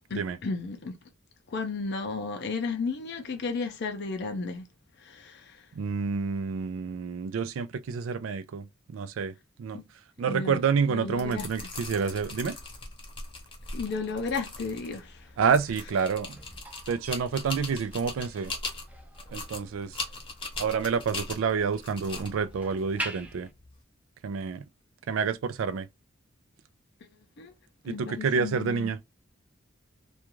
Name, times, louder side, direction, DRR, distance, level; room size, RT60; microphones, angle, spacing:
voice 1, 0.1-1.0 1.5-4.7 5.0-5.7 9.7-9.8 10.3-10.6 10.9-11.5 13.7-15.3 27.0-27.1 27.4-27.5 27.9-28.9, left 4 dB, 55° left, 0.5 m, -33 dB
voice 2, 5.7-9.8 10.2-12.6 15.4-16.4 16.9-18.5 19.3-20.0 20.6-23.5 24.2-24.6 25.1-25.9 27.8-29.0, right 6 dB, 85° right, 0.3 m, -28 dB
sound 1, 11.0-23.8, left 3 dB, 25° left, 0.8 m, -40 dB
sound 2, 13.8-23.5, right 1 dB, 5° right, 0.4 m, -46 dB
2.3 x 2.3 x 2.9 m
head